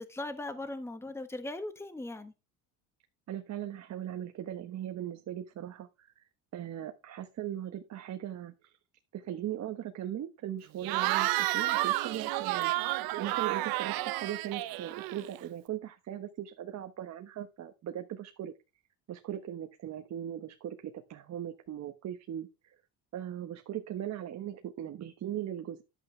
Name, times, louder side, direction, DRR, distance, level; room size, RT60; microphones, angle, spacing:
voice 1, 0.0-2.3, left 2 dB, 5° left, 1.2 m, -39 dB
voice 2, 3.3-6.1 6.5-8.7 9.1-18.5 19.1-22.7 23.1-25.8, right 11 dB, 45° right, 1.3 m, -39 dB
Cheering / Crowd, 10.8-15.4, right 17 dB, 70° right, 1.0 m, -31 dB
11.5 x 8.1 x 3.3 m
cardioid pair, 110°, 37 cm